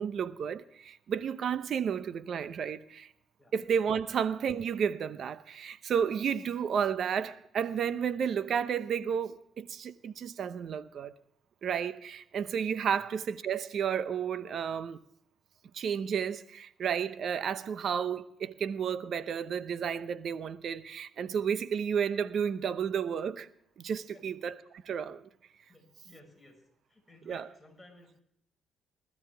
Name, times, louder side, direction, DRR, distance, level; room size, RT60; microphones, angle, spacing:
voice 1, 0.0-3.1 3.5-11.1 11.6-15.0 15.7-23.5 23.8-24.5 24.8-25.2 27.3-27.5, right 7 dB, 60° right, 0.8 m, -32 dB
voice 2, 25.7-26.6 26.9-28.2, left 1 dB, 10° left, 5.7 m, -56 dB
20.0 x 13.5 x 3.4 m
cardioid pair, 90°, 0 cm